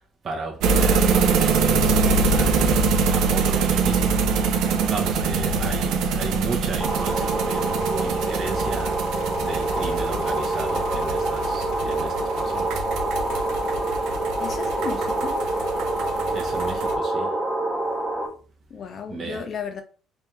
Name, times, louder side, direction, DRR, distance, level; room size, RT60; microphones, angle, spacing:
voice 1, 0.0-2.8 3.1-4.5 4.8-12.9 16.3-17.4 19.1-19.5, right 4 dB, 30° right, 0.7 m, -35 dB
sound 1, 0.6-16.9, right 4 dB, 75° right, 0.6 m, -24 dB
sound 2, 6.8-18.3, right 2 dB, 5° left, 0.8 m, -26 dB
voice 2, 14.4-15.4 18.7-19.8, left 6 dB, 40° left, 0.6 m, -34 dB
3.5 x 3.3 x 3.0 m
cardioid pair, 160°, 0 cm